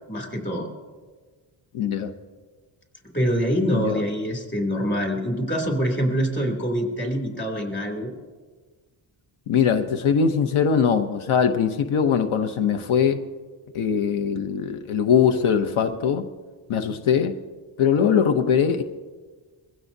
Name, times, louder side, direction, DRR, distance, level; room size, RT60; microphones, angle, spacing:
voice 1, 0.1-0.7 3.1-8.1, equal, 25° left, 1 dB, 2.7 m, -25 dB
voice 2, 1.7-2.1 3.7-4.0 9.5-13.2 13.7-16.3 16.7-17.4 17.8-18.8, left 7 dB, 80° left, 7 dB, 0.9 m, -21 dB
22.5 x 16.0 x 2.7 m, 1.4 s
wide cardioid pair, 135°, 48 cm